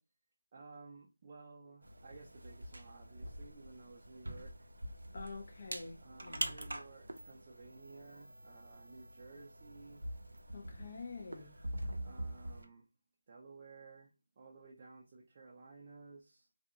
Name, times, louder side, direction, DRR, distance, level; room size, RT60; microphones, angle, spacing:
voice 1, 0.5-4.7 6.0-10.0 11.3-12.8 13.3-14.1 14.4-16.5, right 3 dB, 25° right, 0.4 m, -55 dB
sound 1, 1.8-12.6, right 1 dB, 80° right, 0.5 m, -45 dB
voice 2, 5.1-6.6 10.5-11.5, left 3 dB, 35° left, 0.5 m, -47 dB
2.4 x 2.3 x 2.8 m
figure-of-eight pair, 170°, 0 cm